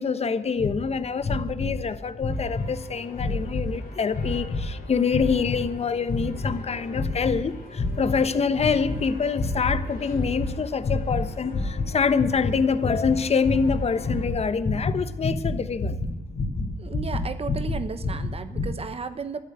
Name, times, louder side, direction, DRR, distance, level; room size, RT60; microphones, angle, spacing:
voice 1, 0.0-16.0, left 5 dB, 45° left, 13 dB, 1.0 m, -26 dB
sound 1, 0.6-0.8 1.2-1.8 2.1-2.7 3.1-3.7 4.1-4.7 5.1-5.7 6.1-6.6 6.9-7.4 7.7-8.2 8.6-9.0 9.3-9.8 10.1-10.5 10.8-11.3 11.5-18.7, left 3 dB, 60° left, 3.3 m, -28 dB
sound 2, 2.3-14.3, left 3 dB, 85° left, 3.7 m, -46 dB
voice 2, 16.8-19.4, right 5 dB, 40° right, 11 dB, 1.0 m, -34 dB
12.5 x 10.5 x 9.5 m, 1.1 s
cardioid pair, 90°, 15 cm